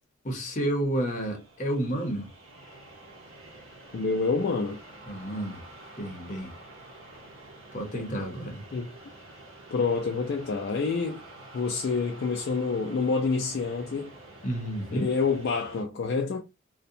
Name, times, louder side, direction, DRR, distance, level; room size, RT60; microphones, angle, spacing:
voice 1, 0.2-2.3 5.1-5.6 6.0-6.5 7.7-8.6 14.4-15.1, right 1 dB, 40° left, 0.7 m, -30 dB
sound 1, 1.0-15.9, right 2 dB, 85° right, 0.7 m, -48 dB
voice 2, 3.9-4.8 8.7-8.9 9.7-11.2 11.5-14.1 14.9-16.4, left 4 dB, 55° left, 0.3 m, -27 dB
2.5 x 2.1 x 2.6 m
head